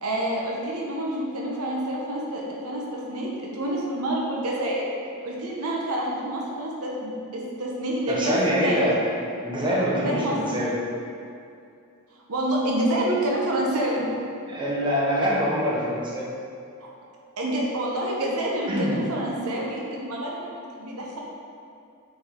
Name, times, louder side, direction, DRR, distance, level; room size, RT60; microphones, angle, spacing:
voice 1, 0.0-4.8 5.2-8.9 10.0-10.4 12.3-14.1 17.4-21.2, right 1 dB, 80° right, -3 dB, 1.1 m, -28 dB
voice 2, 8.1-9.0 9.4-10.7 14.5-16.3 18.7-19.0, equal, 20° right, -6 dB, 1.1 m, -24 dB
7.1 x 4.7 x 3.8 m, 2.5 s
head